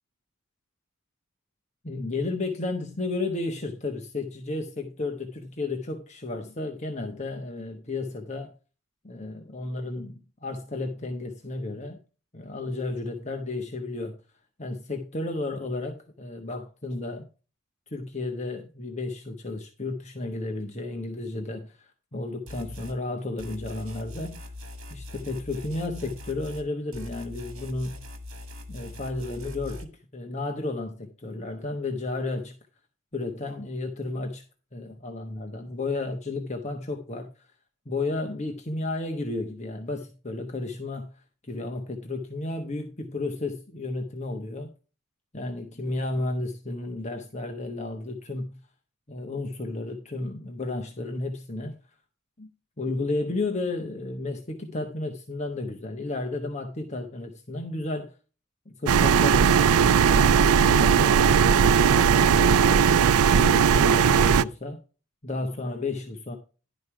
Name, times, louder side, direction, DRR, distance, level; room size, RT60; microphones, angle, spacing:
voice 1, 1.8-8.5 9.0-12.0 12.3-14.2 14.6-17.3 17.9-24.5 24.9-28.0 28.7-32.5 33.1-34.4 34.7-37.3 37.9-44.7 45.3-48.6 49.1-51.8 52.4-52.5 52.8-58.1 58.7-63.1 63.4-64.8 65.2-66.4, left 2 dB, 30° left, 1.1 m, -33 dB
sound 1, 22.5-23.0 23.4-26.7 26.9-29.9, left 1 dB, 70° right, 1.8 m, -41 dB
sound 2, 58.9-64.4, right 7 dB, 85° right, 0.4 m, -18 dB
11.0 x 5.3 x 4.8 m
head